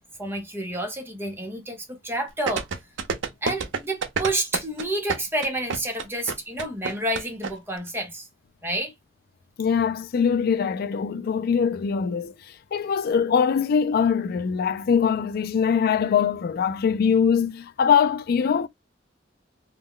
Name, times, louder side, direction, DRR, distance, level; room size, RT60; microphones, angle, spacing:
voice 1, 0.2-2.7 3.4-8.3 8.6-8.9, right 1 dB, 10° right, 0.8 m, -29 dB
sound 1, 2.5-7.5 7.8-7.9, right 5 dB, 70° right, 0.5 m, -28 dB
voice 2, 9.6-18.7, left 7 dB, 55° left, 0.3 m, -22 dB
2.2 x 2.1 x 3.6 m
head